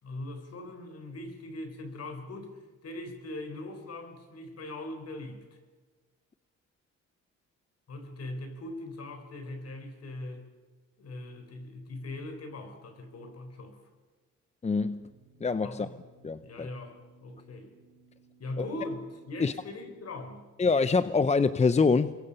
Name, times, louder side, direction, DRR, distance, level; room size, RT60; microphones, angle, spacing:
voice 1, 0.0-5.6 7.9-10.4 11.0-13.8 15.6-15.9 16.4-17.7 18.4-20.5, left 2 dB, 55° left, 6 dB, 4.6 m, -41 dB
voice 2, 14.6-15.1 15.4-15.9 16.2-16.7 19.4-19.5 20.6-22.2, left 4 dB, 20° left, 14 dB, 0.7 m, -25 dB
sound 1, 15.1-20.3, right 2 dB, 45° right, 4.9 m, -61 dB
29.0 x 22.5 x 5.6 m, 1.4 s
cardioid pair, 90°, 30 cm